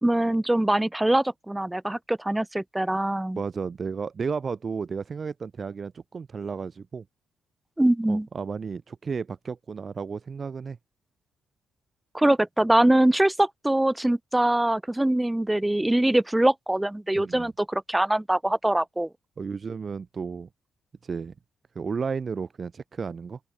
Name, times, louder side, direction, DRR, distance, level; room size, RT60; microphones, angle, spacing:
voice 1, 0.0-3.4 7.8-8.3 12.1-19.1, right 1 dB, 5° right, 2.4 m, -23 dB
voice 2, 3.3-7.0 8.1-10.8 17.1-17.5 19.4-20.5 21.0-21.3 21.8-23.4, right 5 dB, 25° right, 5.4 m, -33 dB
open air
cardioid pair, 170°, 0 cm